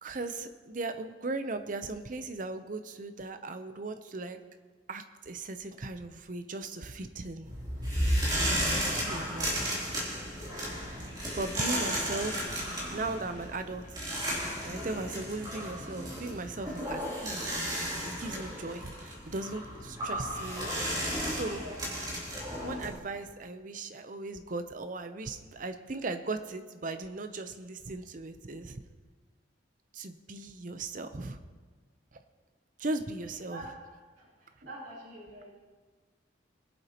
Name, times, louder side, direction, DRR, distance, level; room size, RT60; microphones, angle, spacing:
voice 1, 0.0-4.4 4.9-7.5 8.5-9.8 10.5-13.8 14.6-20.7 21.2-21.6 22.6-28.8 29.9-31.4 32.8-33.6, right 2 dB, 45° right, 8 dB, 0.7 m, -38 dB
sound 1, 7.4-22.9, equal, 25° right, 3.2 m, -34 dB
voice 2, 21.3-21.9 33.5-33.7 34.2-35.5, right 1 dB, 70° right, -8 dB, 3.1 m, -46 dB
21.5 x 8.1 x 3.0 m, 1.4 s
head